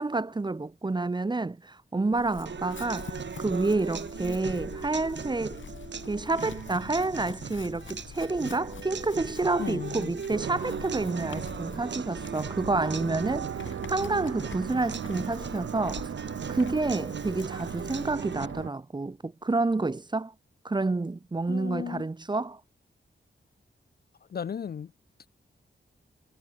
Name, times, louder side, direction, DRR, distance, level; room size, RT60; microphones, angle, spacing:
voice 1, 0.0-5.6 6.1-16.1 16.5-20.3 20.6-22.6, right 3 dB, 20° right, 0.7 m, -29 dB
Chewing mastication / Livestock farm animals working animals, 2.1-18.7, left 6 dB, 65° left, 1.4 m, -45 dB
sound 1, 2.5-18.5, right 6 dB, 60° right, 1.2 m, -40 dB
voice 2, 9.6-10.1 21.5-22.1 24.3-24.9, left 7 dB, 50° left, 0.4 m, -35 dB
sound 2, 10.3-18.7, right 9 dB, 90° right, 0.7 m, -38 dB
wide cardioid pair, 135°, 21 cm